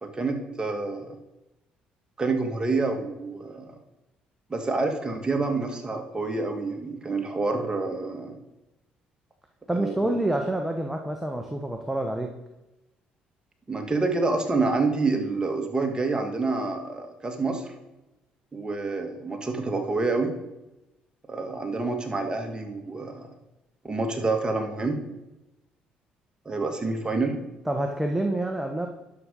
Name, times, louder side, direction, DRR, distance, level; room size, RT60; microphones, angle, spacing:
voice 1, 0.0-1.2 2.2-3.8 4.5-8.4 9.7-10.1 13.7-17.7 18.5-20.3 21.3-23.3 23.8-25.0 26.5-27.4, right 3 dB, 25° right, 4 dB, 2.1 m, -28 dB
voice 2, 9.7-12.3 27.7-28.9, right 1 dB, 5° right, 3 dB, 1.3 m, -27 dB
11.0 x 6.4 x 5.5 m, 0.96 s
supercardioid pair, 65°, 4 cm